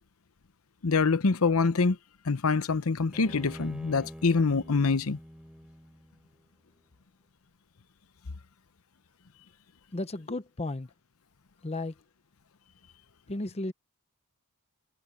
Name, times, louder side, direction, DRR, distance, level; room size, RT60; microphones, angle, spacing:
voice 1, 0.8-2.0 2.2-5.2, left 4 dB, 75° left, 0.8 m, -25 dB
Bowed string instrument, 3.1-6.4, equal, 5° right, 5.5 m, -46 dB
voice 2, 9.9-10.9 11.6-11.9 13.3-13.7, left 2 dB, 30° left, 0.8 m, -34 dB
head